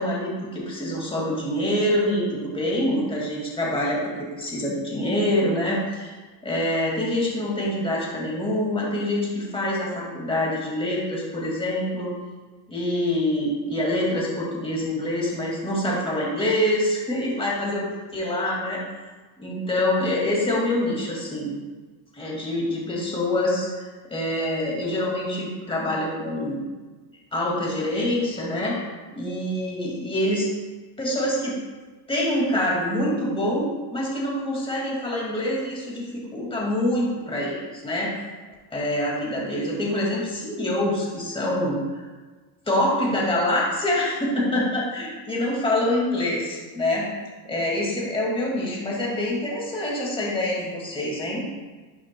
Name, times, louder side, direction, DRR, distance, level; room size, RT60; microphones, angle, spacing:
voice 1, 0.0-6.1 6.4-12.1 12.7-18.8 19.4-21.5 22.1-26.6 27.3-28.8 29.1-30.5 31.0-31.6 32.1-38.1 38.7-42.1 42.7-47.1 47.4-51.5, left 1 dB, 10° left, -4 dB, 2.0 m, -25 dB
11.0 x 6.4 x 2.2 m, 1.3 s
cardioid pair, 125°, 50 cm